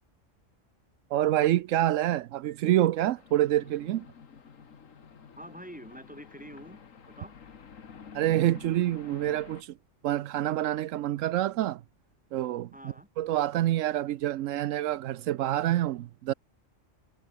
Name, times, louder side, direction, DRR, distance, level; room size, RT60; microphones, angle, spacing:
voice 1, 1.1-4.1 8.1-9.8 10.0-11.8 12.3-12.7 13.2-16.3, right 13 dB, 85° right, 1.0 m, -27 dB
sound 1, 3.2-9.6, left 6 dB, 85° left, 1.9 m, -50 dB
voice 2, 5.4-6.8 7.1-7.3 12.7-13.1, equal, 5° right, 7.0 m, -46 dB
omnidirectional pair, 1.3 m